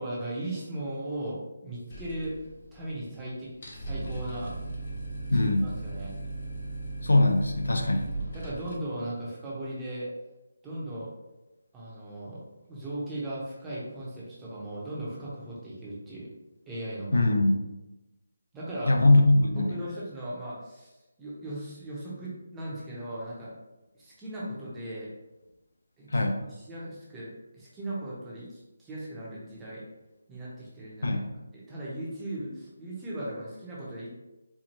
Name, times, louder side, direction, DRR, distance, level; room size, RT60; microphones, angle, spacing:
voice 1, 0.0-2.3 2.7-4.5 5.3-6.1 8.3-10.1 10.6-11.1 11.7-12.4 12.7-16.3 16.7-17.3 18.5-18.9 19.5-20.9 21.2-23.5 23.9-25.1 26.0-26.3 26.6-29.8 30.3-31.2 31.5-34.1, right 1 dB, 10° right, -8 dB, 0.8 m, -37 dB
sound 1, 1.9-2.9 3.2-3.3 3.5-8.8, right 2 dB, 50° left, 0.8 m, -37 dB
voice 2, 5.3-5.6 7.0-8.1 17.1-17.6 18.9-19.8 26.1-26.5 31.0-31.3, left 2 dB, 90° left, 4 dB, 0.6 m, -22 dB
4.4 x 2.3 x 2.8 m, 1.0 s
figure-of-eight pair, 170°, 0 cm